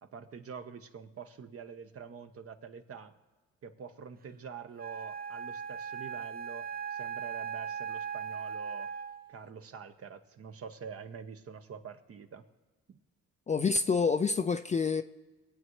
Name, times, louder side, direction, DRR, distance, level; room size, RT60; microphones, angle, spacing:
voice 1, 0.0-3.1 3.6-8.9 9.3-12.5 12.9-13.0, right 6 dB, 50° right, 1.1 m, -46 dB
Wind instrument woodwind instrument, 4.8-9.4, right 7 dB, 30° right, 0.5 m, -38 dB
voice 2, 13.5-15.0, left 5 dB, 25° left, 0.4 m, -27 dB
22.0 x 8.5 x 3.2 m
cardioid pair, 90°, 30 cm